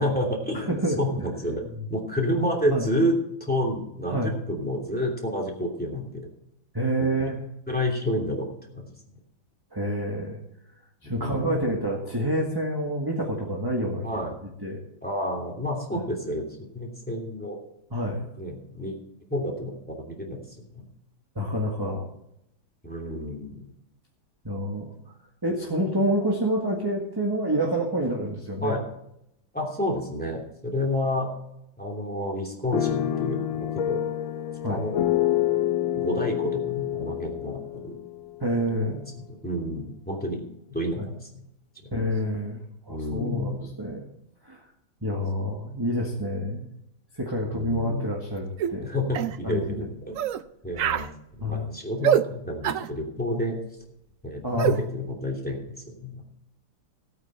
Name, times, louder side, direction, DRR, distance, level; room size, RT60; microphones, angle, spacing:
voice 1, 0.0-0.7 1.0-1.6 1.9-3.1 3.4-6.2 7.0-7.1 7.7-8.9 11.2-11.8 14.0-14.4 15.0-17.6 18.4-19.0 19.3-20.4 20.7-20.8 22.8-23.7 28.6-28.8 29.5-31.3 31.8-34.0 34.6-35.0 35.9-37.9 39.3-40.4 40.7-41.4 41.8-41.9 42.9-43.7 47.5-48.1 48.8-50.2 50.6-53.6 54.2-55.6 55.9-56.2, left 1 dB, 5° left, 0 dB, 2.8 m, -29 dB
voice 2, 0.5-1.0 2.7-2.8 4.1-4.3 6.7-7.4 9.7-10.4 11.0-14.0 14.6-14.8 15.9-16.0 17.9-18.3 21.3-22.0 24.4-24.9 25.4-28.8 34.6-34.8 38.4-39.0 41.0-41.1 41.9-42.6 42.9-44.0 44.4-44.6 45.0-46.7 47.2-48.9 49.4-49.9 51.4-51.7 54.4-54.8, equal, 10° right, -1 dB, 1.6 m, -28 dB
sound 1, 32.7-38.8, left 12 dB, 80° left, 1.5 m, -27 dB
sound 2, 48.6-48.8 49.1-49.4 50.1-50.4 50.8-51.1 52.0-52.3 52.6-52.9 54.6-54.8, right 9 dB, 90° right, 0.7 m, -24 dB
16.5 x 8.9 x 4.4 m, 0.79 s
omnidirectional pair, 2.2 m